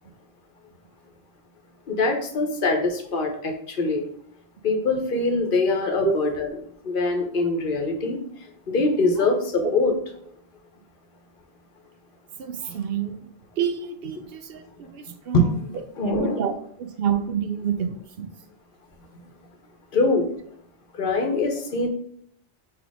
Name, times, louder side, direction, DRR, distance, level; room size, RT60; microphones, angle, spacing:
voice 1, 1.9-4.0 4.6-6.5 6.8-8.2 8.7-9.9 12.6-12.7 14.2-14.3 15.3-15.5 16.0-16.4 19.9-20.2 20.9-21.9, left 2 dB, 60° left, 4 dB, 0.9 m, -23 dB
voice 2, 12.4-13.3 13.6-14.6 14.9-15.4 16.0-16.5 16.8-18.3, right 7 dB, 70° right, 7 dB, 0.8 m, -28 dB
4.0 x 2.9 x 4.6 m, 0.64 s
omnidirectional pair, 1.0 m